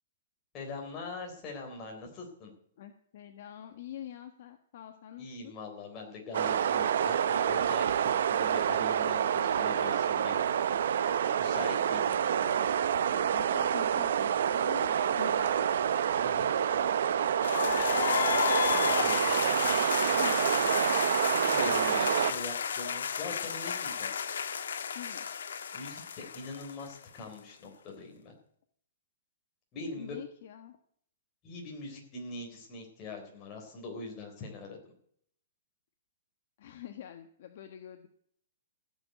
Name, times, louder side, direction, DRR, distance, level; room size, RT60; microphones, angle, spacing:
voice 1, 0.5-2.5 5.2-10.4 11.4-12.1 16.2-16.5 18.7-20.2 21.3-24.1 25.7-28.3 29.7-30.2 31.4-34.8, left 3 dB, 20° left, 0 dB, 3.8 m, -42 dB
voice 2, 2.8-5.6 9.3-9.8 10.8-15.7 17.6-18.1 20.1-20.4 21.6-22.0 24.9-25.3 30.0-30.8 36.6-38.1, left 10 dB, 45° left, 6 dB, 1.3 m, -46 dB
sound 1, 6.3-22.3, right 9 dB, 60° right, 0.7 m, -28 dB
sound 2, 17.4-27.2, left 7 dB, 85° left, 1.4 m, -32 dB
16.0 x 7.4 x 9.2 m, 0.64 s
hypercardioid pair, 170°, 0 cm